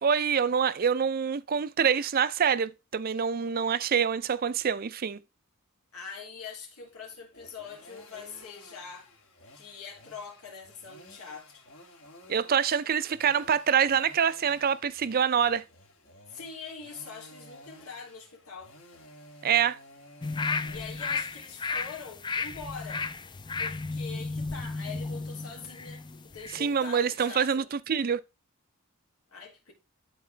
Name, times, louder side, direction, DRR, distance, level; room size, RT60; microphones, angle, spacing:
voice 1, 0.0-5.2 12.3-15.6 19.4-19.8 26.5-28.2, right 7 dB, 40° right, 0.4 m, -26 dB
voice 2, 5.9-9.1 9.5-11.6 16.3-18.7 20.7-23.1 23.6-27.7 29.3-29.7, left 5 dB, 85° left, 2.9 m, -43 dB
sound 1, 6.8-20.8, left 1 dB, 70° left, 2.4 m, -53 dB
sound 2, 20.2-26.6 27.0-27.1, left 4 dB, 20° left, 0.4 m, -34 dB
12.0 x 4.3 x 3.3 m
head